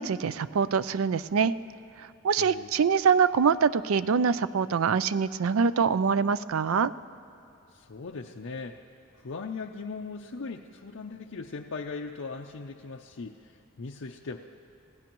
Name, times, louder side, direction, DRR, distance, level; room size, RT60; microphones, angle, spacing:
voice 1, 0.0-1.5 2.0-6.9, right 6 dB, 85° right, 15 dB, 0.4 m, -24 dB
voice 2, 2.4-2.7 7.7-8.8 9.2-14.4, left 4 dB, 70° left, 0 dB, 0.6 m, -39 dB
28.5 x 16.5 x 3.0 m, 2.8 s
head